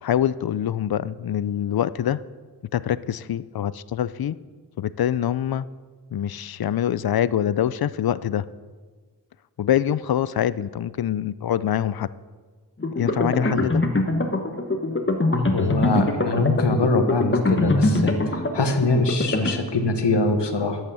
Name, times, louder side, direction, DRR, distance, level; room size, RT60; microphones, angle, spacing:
voice 1, 0.0-2.2 2.7-4.4 4.8-5.7 6.1-8.5 9.6-12.1 13.0-13.8, left 10 dB, 60° left, 17 dB, 0.5 m, -24 dB
sound 1, 12.8-19.5, left 2 dB, 30° left, 1.1 m, -23 dB
voice 2, 15.5-20.8, left 3 dB, 80° left, 6 dB, 1.2 m, -23 dB
9.3 x 7.9 x 7.0 m, 1.5 s
wide cardioid pair, 50°, 41 cm